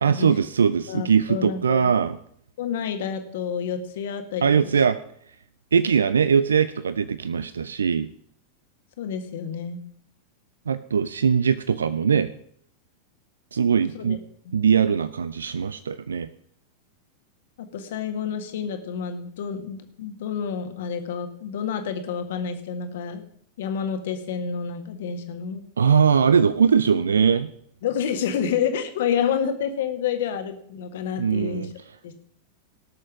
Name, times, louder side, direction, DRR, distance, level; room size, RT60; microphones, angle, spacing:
voice 1, 0.0-2.2 4.4-5.0 5.7-8.1 10.7-12.3 13.5-14.2 14.5-16.3 25.8-27.5 31.2-31.7, right 6 dB, 70° right, 14 dB, 0.5 m, -21 dB
voice 2, 0.9-1.9 2.6-4.8 9.0-9.8 13.9-14.2 14.4-14.5 17.6-23.2 23.6-25.6 27.8-31.7 32.0-32.2, left 7 dB, 55° left, 7 dB, 1.7 m, -29 dB
17.5 x 6.5 x 6.1 m, 0.65 s
figure-of-eight pair, 90°, 0 cm